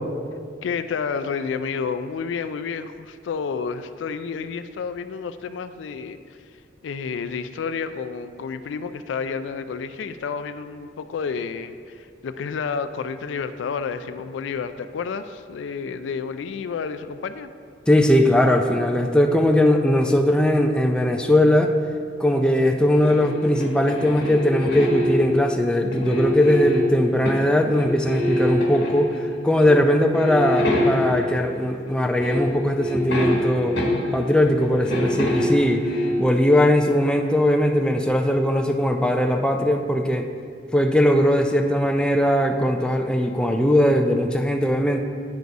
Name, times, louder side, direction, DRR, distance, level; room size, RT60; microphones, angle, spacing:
voice 1, 0.6-6.4 6.8-17.5, left 5 dB, 85° left, 11 dB, 0.3 m, -30 dB
voice 2, 17.9-21.7 22.2-29.1 29.4-33.8 34.1-35.8 36.2-40.3 40.7-45.0, left 1 dB, 5° left, 3 dB, 0.3 m, -19 dB
sound 1, 23.0-25.4 25.9-27.5 27.8-29.2 29.6-29.8 30.1-31.3 31.9-32.0 32.2-34.3 34.6-36.2, left 1 dB, 65° left, 1.2 m, -25 dB
9.4 x 4.0 x 4.6 m, 2.2 s
head